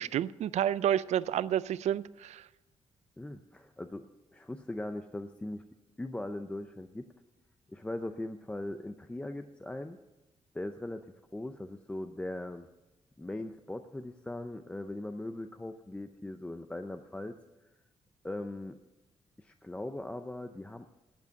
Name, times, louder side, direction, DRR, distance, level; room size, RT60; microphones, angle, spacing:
voice 1, 0.0-2.4, right 10 dB, 75° right, 0.4 m, -30 dB
voice 2, 3.2-4.0 4.3-5.6 6.0-7.1 7.7-10.0 10.5-11.1 11.3-12.7 13.2-17.4 18.2-18.8 19.4-20.9, left 1 dB, 10° left, 0.5 m, -39 dB
12.0 x 8.2 x 7.2 m
cardioid pair, 125°, 12 cm